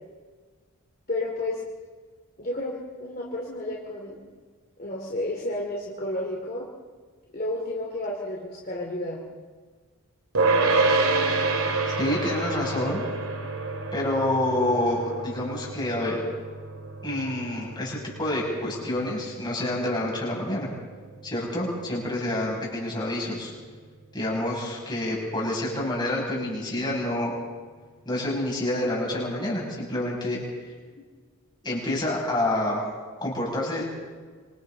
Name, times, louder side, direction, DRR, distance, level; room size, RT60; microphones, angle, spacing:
voice 1, 1.1-1.6 2.4-4.2 4.8-6.6 7.3-9.2 12.0-12.3, left 1 dB, 40° left, -3 dB, 2.8 m, -31 dB
sound 1, 10.3-21.7, right 3 dB, 75° right, 2.2 m, -28 dB
voice 2, 12.0-13.0 13.9-16.2 17.0-20.7 21.2-23.5 24.1-27.3 28.0-30.4 31.6-32.8 33.2-33.8, left 1 dB, 20° left, -4 dB, 7.0 m, -28 dB
26.5 x 25.5 x 4.0 m, 1.5 s
head